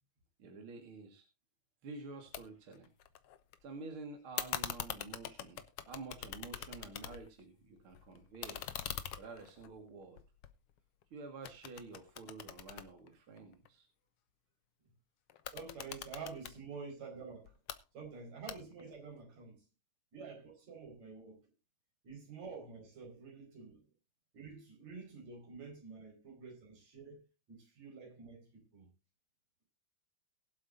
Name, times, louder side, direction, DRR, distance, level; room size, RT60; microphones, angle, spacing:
voice 1, 0.4-1.3 1.8-2.9 3.6-8.7 9.2-10.2 11.1-13.9, right 3 dB, 50° right, 2.5 m, -49 dB
multimeter button clicks, 2.3-2.4 2.7-3.6 4.4-7.4 7.8-11.0 11.4-13.7 15.3-16.6 17.4-17.8 18.5-18.9, left 11 dB, 65° left, 1.7 m, -43 dB
voice 2, 15.5-17.5 17.9-19.6 20.1-21.4 22.0-23.8 24.3-28.9, right 5 dB, 65° right, 6.4 m, -49 dB
22.0 x 7.9 x 2.7 m
omnidirectional pair, 3.3 m